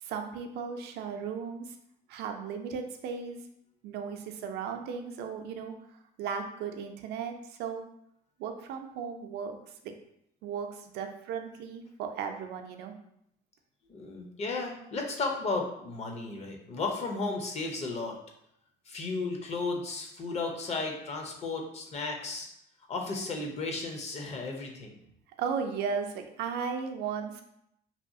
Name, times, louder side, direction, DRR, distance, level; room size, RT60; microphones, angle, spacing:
voice 1, 0.0-1.8 2.1-3.5 3.8-7.8 8.4-9.6 9.8-9.9 10.4-12.9 25.4-27.5, right 6 dB, 80° right, 5 dB, 0.4 m, -36 dB
voice 2, 13.9-18.2 18.9-22.5 22.9-25.0, left 3 dB, 40° left, 2 dB, 0.5 m, -34 dB
2.7 x 2.3 x 2.6 m, 0.76 s
cardioid pair, 110°, 17 cm